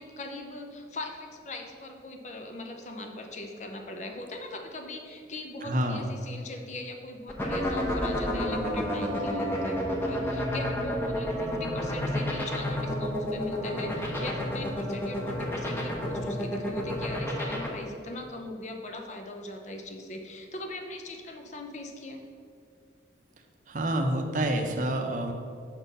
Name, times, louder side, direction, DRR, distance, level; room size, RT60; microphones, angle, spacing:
voice 1, 0.0-22.2, left 2 dB, 40° left, 3 dB, 0.5 m, -40 dB
voice 2, 5.6-6.1 23.7-25.3, right 1 dB, 45° right, 5 dB, 0.6 m, -28 dB
sound 1, 7.3-17.7, left 1 dB, 10° left, 0.8 m, -29 dB
6.0 x 4.1 x 5.3 m, 2.3 s
head